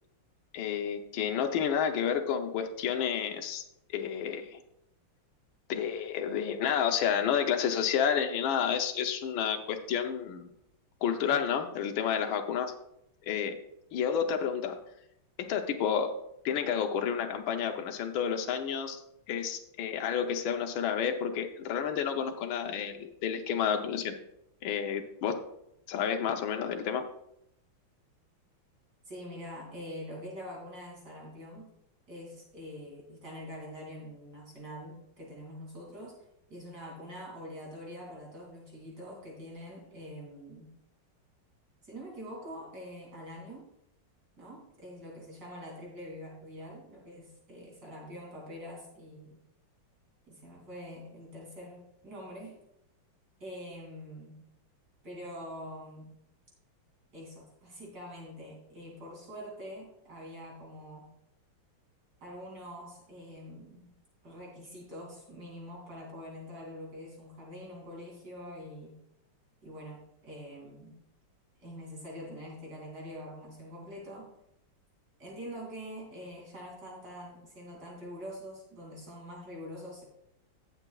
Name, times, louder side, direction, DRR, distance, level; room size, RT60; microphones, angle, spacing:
voice 1, 0.5-3.6 3.9-4.6 5.7-10.5 11.0-12.7 13.3-13.6 13.9-14.8 15.4-16.1 16.4-19.0 19.3-24.2 24.6-25.4 25.9-27.0, left 8 dB, 75° left, 5 dB, 1.6 m, -30 dB
voice 2, 29.0-31.7 32.1-36.2 36.5-40.7 41.8-43.7 44.4-49.4 50.3-52.5 53.4-54.4 55.0-56.1 57.1-61.1 62.2-63.9 64.2-68.9 69.6-71.0 71.6-74.3 75.2-80.0, equal, 50° right, -3 dB, 3.3 m, -45 dB
17.0 x 6.9 x 2.3 m, 0.79 s
omnidirectional pair, 2.3 m